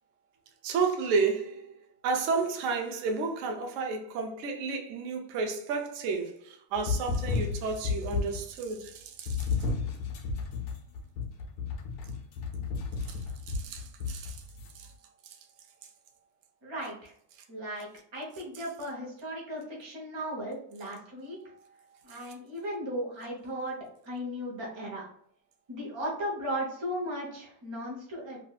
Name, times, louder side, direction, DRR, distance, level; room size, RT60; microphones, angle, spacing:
voice 1, 0.6-1.7 2.0-9.4 13.1-13.2 13.5-14.4 14.7-14.9, right 4 dB, 70° right, 0.7 m, -31 dB
sound 1, 6.8-8.5 9.3-14.7, left 4 dB, 75° left, 1.0 m, -33 dB
voice 2, 16.6-17.1 17.5-21.4 22.0-23.8 24.0-25.1 25.7-28.4, equal, 25° right, 0.6 m, -36 dB
3.1 x 2.6 x 2.3 m
omnidirectional pair, 2.0 m